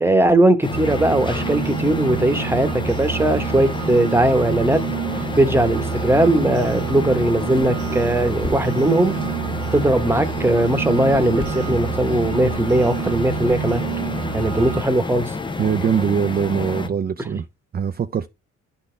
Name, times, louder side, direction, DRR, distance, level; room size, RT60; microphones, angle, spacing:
voice 1, 0.0-4.8 5.1-9.1 9.7-13.8 14.3-15.3 17.2-17.3, right 1 dB, 10° right, 1.1 m, -19 dB
sound 1, 0.6-16.9, left 3 dB, 15° left, 0.5 m, -29 dB
sound 2, 0.7-14.8, right 12 dB, 85° right, 0.7 m, -28 dB
sound 3, 5.5-11.5, left 4 dB, 40° left, 1.3 m, -41 dB
voice 2, 15.6-17.4 17.7-18.3, right 7 dB, 30° right, 0.5 m, -22 dB
11.0 x 4.2 x 3.3 m
cardioid pair, 90°, 30 cm